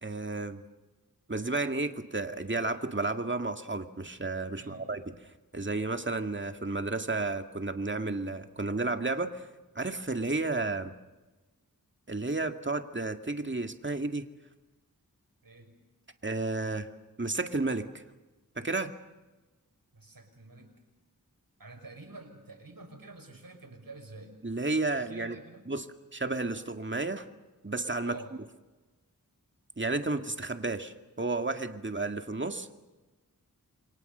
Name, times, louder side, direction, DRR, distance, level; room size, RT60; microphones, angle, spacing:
voice 1, 0.0-0.6 1.3-5.0 5.5-9.4 9.8-10.9 12.1-14.3 16.2-16.9 17.2-18.0 18.6-18.9 24.4-25.4 25.7-25.9 26.1-27.3 27.6-28.2 29.8-32.7, right 3 dB, 35° right, 6 dB, 2.0 m, -32 dB
voice 2, 4.5-4.9 15.4-15.8 19.9-20.7 21.6-24.4 24.9-25.7 28.0-28.3, right 2 dB, 75° right, 5 dB, 5.8 m, -48 dB
28.0 x 24.0 x 6.8 m, 1.1 s
wide cardioid pair, 45°, 35 cm